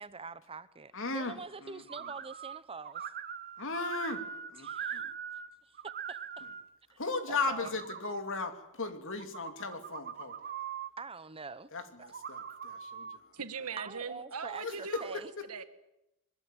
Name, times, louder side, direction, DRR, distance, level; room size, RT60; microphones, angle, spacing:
voice 1, 0.0-3.1 4.6-5.1 5.6-5.8 6.1-6.5 6.9-7.0 7.3-7.7 11.0-11.7 13.8-15.3, right 4 dB, 25° right, 0.9 m, -45 dB
voice 2, 0.9-1.3 1.6-1.8 3.6-4.2 4.5-5.1 7.0-10.4 11.7-13.2 14.5-15.0, left 3 dB, 60° left, 2.9 m, -36 dB
sound 1, 1.9-2.6 2.8-5.5 5.7-6.6 7.2-8.1 9.1-10.9 12.0-13.2, right 8 dB, 45° right, 1.3 m, -41 dB
voice 3, 13.3-15.2 15.5-15.6, right 5 dB, 85° right, 1.8 m, -40 dB
22.0 x 22.0 x 9.2 m
head